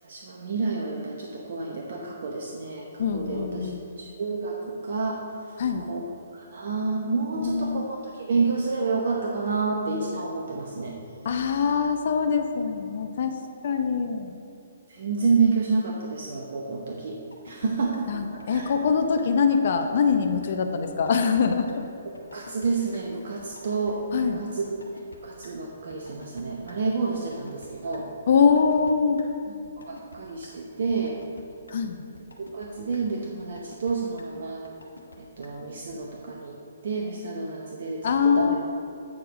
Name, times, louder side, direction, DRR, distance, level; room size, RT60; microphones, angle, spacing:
voice 1, 0.0-3.7 4.0-5.2 5.8-6.0 6.3-11.0 14.9-17.2 17.4-18.6 22.3-28.1 29.5-29.6 29.9-31.2 32.4-34.6 35.2-38.6, right 4 dB, 60° right, -1 dB, 0.9 m, -29 dB
voice 2, 3.0-3.8 5.6-5.8 7.3-7.8 11.2-13.3 13.6-14.3 18.1-21.8 24.1-24.4 28.3-29.2 31.7-32.0 38.0-38.6, left 6 dB, 55° left, 6 dB, 0.6 m, -23 dB
sound 1, 17.3-17.7 17.9-18.0 18.4-18.9 19.2-19.3 19.6-20.2 20.4-20.5 20.9-21.4 21.7-21.8 22.1-22.7 22.9-23.0 23.4-23.9 24.2-24.3 24.6-25.2 25.4-25.5 25.9-26.7 27.1-28.0 28.4-28.9 29.2-29.3 29.6-30.2 30.4-30.5 30.9-31.4 31.7-31.8 32.1-32.7 32.9-33.0 33.4-33.9 34.2-34.3 34.6-35.2 35.4-35.5 35.9-36.0, left 3 dB, 85° left, 1.1 m, -47 dB
8.7 x 4.6 x 5.1 m, 2.8 s
figure-of-eight pair, 130°, 0 cm